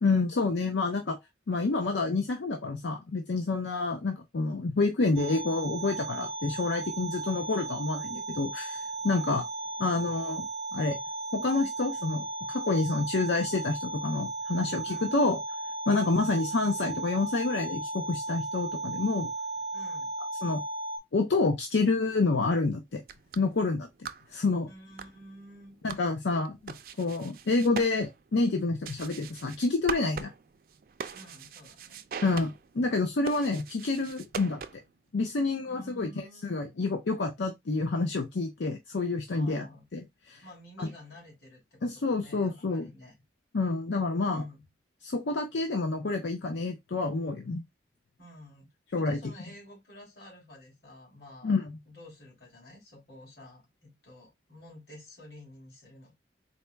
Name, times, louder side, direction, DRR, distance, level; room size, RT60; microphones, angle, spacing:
voice 1, 0.0-1.2 1.5-9.4 9.8-10.5 10.7-11.0 11.3-15.4 15.9-19.3 20.4-20.6 21.1-23.0 23.4-24.7 25.8-30.3 32.2-34.8 35.1-39.7 39.9-40.4 40.8-40.9 41.8-42.9 43.5-44.4 45.0-47.6 48.9-49.2 51.4-51.7, left 3 dB, 80° left, 0.6 m, -28 dB
sound 1, 5.2-21.0, right 2 dB, 90° right, 0.7 m, -36 dB
voice 2, 9.0-9.3 14.8-15.2 19.7-20.1 24.7-25.8 31.1-32.1 35.7-36.6 39.3-39.9 40.4-43.1 44.2-44.7 48.2-51.5 51.9-56.2, left 1 dB, 60° left, 2.5 m, -51 dB
sound 2, 22.9-35.0, right 6 dB, 50° right, 0.4 m, -43 dB
4.1 x 2.2 x 3.3 m
head